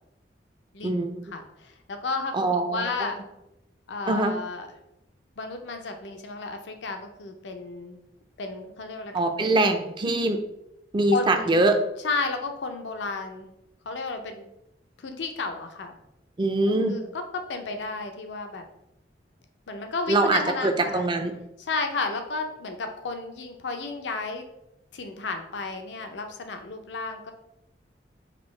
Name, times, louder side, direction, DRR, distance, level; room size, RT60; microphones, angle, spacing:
voice 1, 0.7-1.1 1.3-3.2 3.9-4.7 5.4-8.0 8.4-9.6 11.1-11.6 12.0-13.5 13.9-14.5 15.0-16.0 16.9-18.6 19.7-21.1 21.7-24.5 24.9-27.3, left 3 dB, 85° left, 6 dB, 0.5 m, -33 dB
voice 2, 2.3-2.9 4.1-4.4 9.1-10.4 10.9-11.8 16.4-17.0 20.1-21.3, right 2 dB, 25° right, 6 dB, 0.4 m, -23 dB
5.2 x 2.7 x 3.1 m, 0.85 s
head